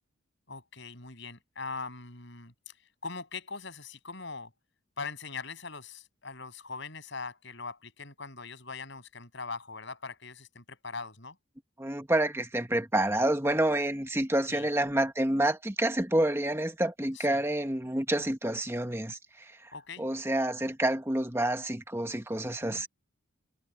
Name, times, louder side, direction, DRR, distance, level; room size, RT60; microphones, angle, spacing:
voice 1, 0.5-2.7 3.0-4.5 5.0-11.4 14.5-14.7 17.1-17.4 19.7-20.1 22.6-22.8, left 4 dB, 60° left, 8.0 m, -41 dB
voice 2, 11.8-19.5 20.0-22.9, right 1 dB, 10° right, 1.3 m, -28 dB
head